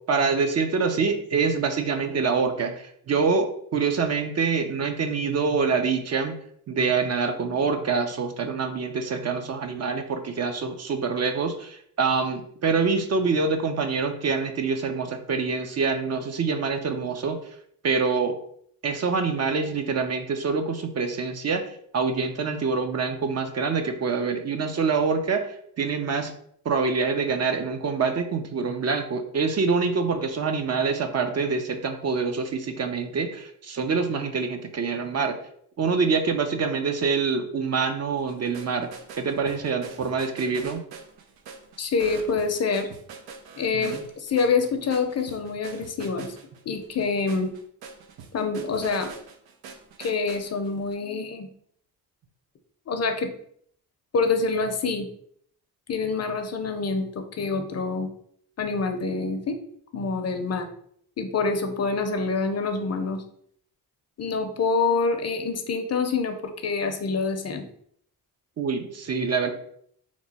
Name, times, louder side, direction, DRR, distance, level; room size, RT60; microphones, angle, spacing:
voice 1, 0.1-6.4 6.7-17.4 17.8-18.4 18.8-21.6 21.9-26.3 26.6-35.4 35.8-38.9 39.2-40.8 43.7-43.9 68.6-69.5, right 5 dB, 45° right, 6 dB, 0.5 m, -25 dB
sound 1, 38.2-50.9, right 5 dB, 85° right, 0.6 m, -44 dB
voice 2, 41.8-42.9 43.6-46.3 46.7-47.5 48.3-49.1 50.0-51.5 52.9-53.3 54.1-55.1 55.9-58.1 58.6-59.6 59.9-60.7 61.2-63.2 64.2-67.6, left 4 dB, 45° left, 7 dB, 0.5 m, -26 dB
3.0 x 2.2 x 4.1 m, 0.65 s
cardioid pair, 70°, 37 cm